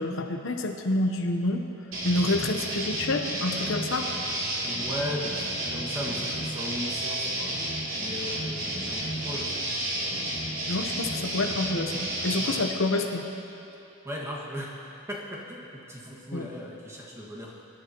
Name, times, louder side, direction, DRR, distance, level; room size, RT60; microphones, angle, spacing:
voice 1, 0.0-1.6 2.0-4.1 10.7-13.2 16.3-16.5, left 2 dB, 65° left, 4 dB, 0.9 m, -28 dB
sound 1, 1.9-12.6, right 1 dB, 65° right, 2.8 m, -31 dB
voice 2, 4.6-7.6 8.0-9.6 12.4-12.6 14.0-17.6, equal, 15° right, -4 dB, 1.8 m, -37 dB
24.0 x 11.0 x 3.0 m, 2.9 s
head